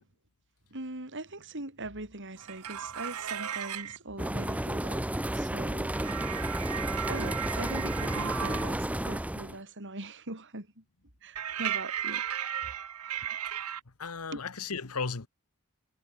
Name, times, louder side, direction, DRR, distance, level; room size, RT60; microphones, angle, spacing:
voice 1, 0.7-5.0 5.3-5.9 7.1-10.8 11.2-12.2 14.3-14.4, right 2 dB, 55° right, 4.8 m, -41 dB
sound 1, 2.4-4.0 5.9-8.7 11.3-13.8, right 9 dB, 90° right, 1.2 m, -35 dB
sound 2, 4.2-9.6, right 1 dB, 5° right, 0.6 m, -32 dB
voice 2, 14.0-15.3, left 5 dB, 75° left, 1.3 m, -35 dB
head